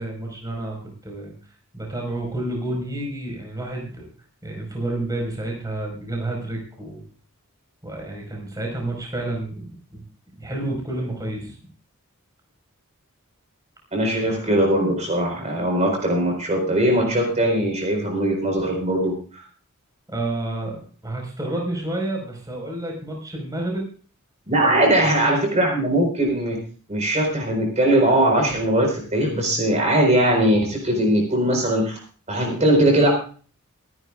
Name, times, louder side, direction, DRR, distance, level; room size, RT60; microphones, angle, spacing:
voice 1, 0.0-1.3 1.7-4.1 4.4-7.0 7.8-9.6 9.9-10.0 10.4-11.5 20.1-23.9 24.7-25.0, right 1 dB, 15° right, 0 dB, 4.9 m, -30 dB
voice 2, 13.9-19.4 24.5-26.6 26.9-32.0 32.3-33.1, right 1 dB, 35° right, 1 dB, 4.7 m, -20 dB
26.0 x 11.0 x 2.5 m, 0.40 s
head